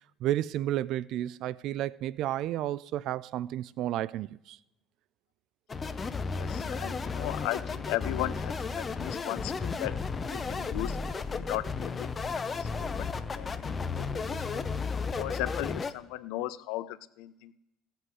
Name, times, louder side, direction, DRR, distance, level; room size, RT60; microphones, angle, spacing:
voice 1, 0.2-4.6, right 13 dB, 45° right, 0.3 m, -32 dB
sound 1, 5.7-15.9, left 4 dB, 15° left, 0.5 m, -33 dB
voice 2, 6.3-10.0 10.3-11.0 11.3-12.1 12.5-13.1 13.3-14.7 15.2-17.5, left 16 dB, 70° left, 0.5 m, -36 dB
16.5 x 7.8 x 4.8 m
cardioid pair, 175°, 0 cm